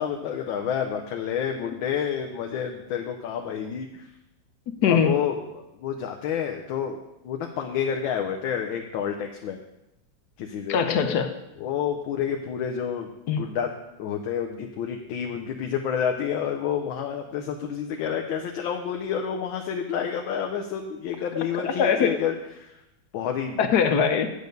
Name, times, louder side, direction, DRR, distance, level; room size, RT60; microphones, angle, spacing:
voice 1, 0.0-4.1 4.8-7.0 7.2-9.6 10.4-10.8 11.6-13.1 13.4-13.7 14.0-22.8 23.1-23.6, left 8 dB, 90° left, 3 dB, 1.5 m, -29 dB
voice 2, 4.8-5.1 10.7-11.3 13.3-13.4 21.6-22.2 23.6-24.3, left 7 dB, 65° left, 7 dB, 1.2 m, -21 dB
8.4 x 8.0 x 5.2 m, 0.92 s
omnidirectional pair, 2.1 m